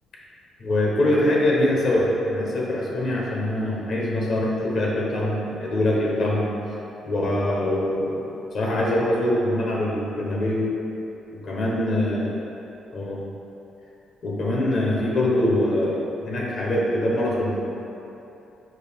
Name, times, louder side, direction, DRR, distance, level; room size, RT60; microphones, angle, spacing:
voice 1, 0.6-6.5 7.0-8.3 8.5-10.6 11.3-12.3 12.9-13.3 14.2-17.6, left 1 dB, 55° left, -3 dB, 0.9 m, -23 dB
6.0 x 2.4 x 3.5 m, 3.0 s
cardioid pair, 90°, 0 cm